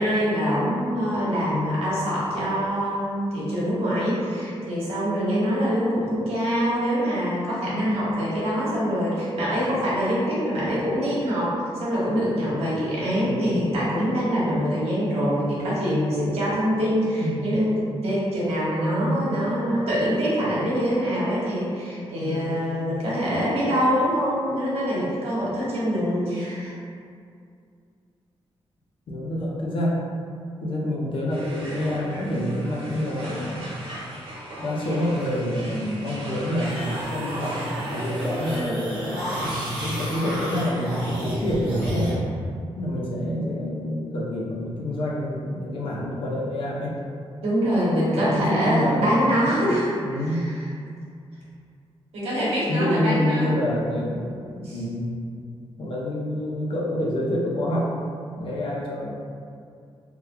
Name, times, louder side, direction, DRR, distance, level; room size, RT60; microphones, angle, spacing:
voice 1, 0.0-26.7 47.4-50.0 50.3-50.4 52.1-53.5 54.6-54.8, equal, 90° right, -8 dB, 1.0 m, -24 dB
voice 2, 13.1-13.5 17.2-17.6 19.0-19.5 22.2-22.6 29.1-30.1 30.6-33.7 34.6-38.8 39.8-42.2 42.8-47.0 48.1-49.7 50.0-50.5 52.4-55.1 55.8-57.9 58.3-59.1, left 1 dB, 60° left, -5 dB, 0.6 m, -27 dB
sound 1, 31.3-38.6, right 1 dB, 70° right, 0.9 m, -38 dB
sound 2, 36.6-42.1, equal, 10° right, 1.1 m, -30 dB
3.5 x 2.3 x 2.3 m, 2.3 s
wide cardioid pair, 150°, 10 cm